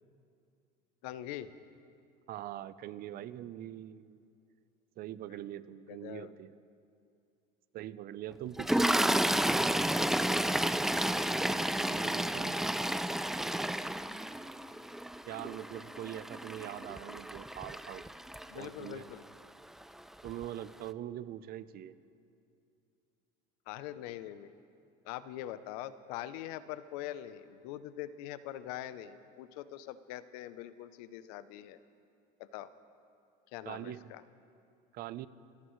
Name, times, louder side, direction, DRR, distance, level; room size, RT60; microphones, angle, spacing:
voice 1, 1.0-1.5 5.9-6.3 18.5-19.2 23.7-24.5 25.0-31.8 32.4-32.7 33.5-34.2, left 12 dB, 90° left, 14 dB, 0.7 m, -43 dB
voice 2, 2.3-4.2 5.0-6.5 7.7-8.9 11.9-12.6 15.2-18.0 18.5-19.1 20.2-22.0 33.6-34.0 34.9-35.3, right 12 dB, 55° right, 15 dB, 0.6 m, -43 dB
Toilet flush, 8.6-18.9 19.8-20.0 20.2-20.4, right 1 dB, ahead, 0.3 m, -31 dB
27.0 x 14.5 x 3.2 m, 2.5 s
supercardioid pair, 115°, 19 cm